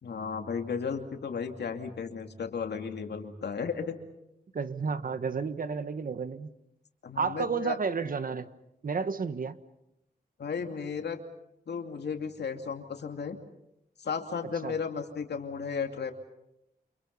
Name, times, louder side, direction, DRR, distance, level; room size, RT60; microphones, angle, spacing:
voice 1, 0.0-4.0 7.0-7.8 10.4-11.2 11.7-13.4 14.0-16.1, left 6 dB, 90° left, 5 dB, 2.6 m, -34 dB
voice 2, 4.5-6.5 7.2-8.5 8.8-9.6 14.6-14.7, right 5 dB, 55° right, 12 dB, 1.3 m, -31 dB
29.0 x 27.5 x 5.5 m, 0.85 s
wide cardioid pair, 110°, 17 cm